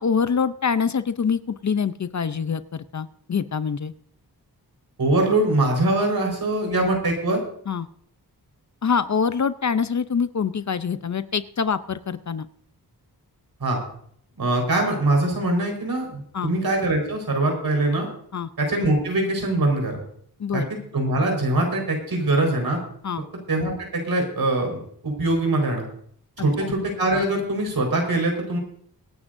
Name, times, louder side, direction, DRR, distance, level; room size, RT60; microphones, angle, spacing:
voice 1, 0.0-3.9 7.7-7.9 8.8-12.5 16.3-16.5 18.3-18.5 20.4-20.7 23.0-23.2 26.4-26.7, left 6 dB, 45° left, 12 dB, 0.7 m, -25 dB
voice 2, 5.0-7.4 13.6-13.8 14.4-18.1 18.6-19.9 20.5-20.6 20.9-22.8 23.5-25.8 26.4-28.6, right 2 dB, 65° right, 2 dB, 4.9 m, -23 dB
25.0 x 9.8 x 2.7 m, 0.64 s
wide cardioid pair, 80°, 39 cm